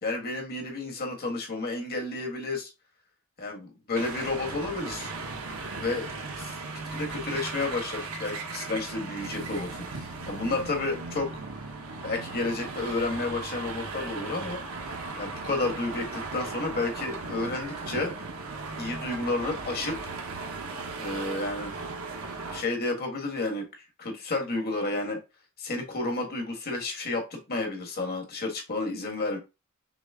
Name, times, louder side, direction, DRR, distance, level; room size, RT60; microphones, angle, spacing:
voice 1, 0.0-2.7 3.4-5.1 5.8-6.6 6.9-11.3 12.0-14.6 15.2-18.1 18.8-20.1 21.0-21.7 22.5-23.7 24.0-25.2 25.6-29.4, left 2 dB, 45° left, 2 dB, 1.4 m, -31 dB
sound 1, 4.0-22.6, right 3 dB, 80° right, 1.0 m, -37 dB
6.0 x 2.1 x 3.5 m, 0.26 s
head